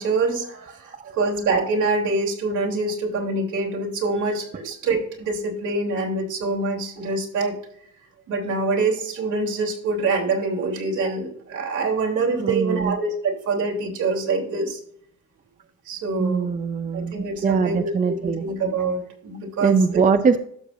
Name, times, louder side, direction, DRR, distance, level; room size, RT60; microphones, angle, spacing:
voice 1, 0.0-7.6 8.3-14.8 15.9-16.5 16.9-20.1, right 3 dB, 75° right, 0 dB, 3.3 m, -25 dB
voice 2, 12.4-13.0 16.2-18.4 19.6-20.4, right 5 dB, 25° right, 9 dB, 0.6 m, -22 dB
12.5 x 6.5 x 2.6 m, 0.65 s
cardioid pair, 90°, 30 cm